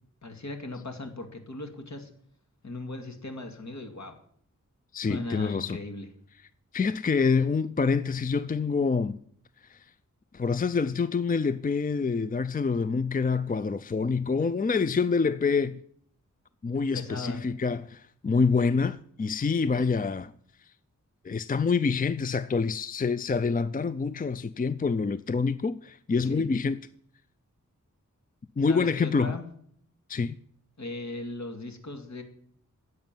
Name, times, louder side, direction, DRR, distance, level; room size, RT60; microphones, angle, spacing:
voice 1, 0.2-2.1 2.6-4.2 5.0-6.1 16.9-17.4 26.2-26.4 28.7-29.4 30.8-32.2, left 2 dB, 60° left, 2.3 m, -38 dB
voice 2, 4.9-5.8 6.7-9.2 9.7-9.9 10.3-15.8 16.6-20.3 21.2-26.8 28.6-29.4 30.1-30.4, left 5 dB, 30° left, 0.4 m, -26 dB
11.0 x 8.0 x 9.0 m
wide cardioid pair, 85°, 32 cm